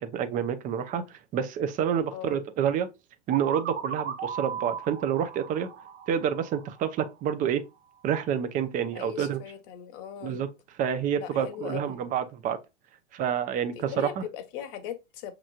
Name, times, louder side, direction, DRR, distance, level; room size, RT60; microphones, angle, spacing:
voice 1, 0.0-2.9 3.3-5.7 6.1-7.6 8.0-9.4 10.2-10.5 10.8-12.6 13.1-14.2, right 8 dB, 25° right, 0.5 m, -28 dB
voice 2, 2.1-2.4 8.9-10.4 11.2-11.9 13.9-15.3, left 10 dB, 50° left, 1.0 m, -39 dB
sound 1, 3.3-7.1, right 7 dB, 75° right, 0.9 m, -36 dB
6.2 x 3.0 x 2.4 m
hypercardioid pair, 115°, 36 cm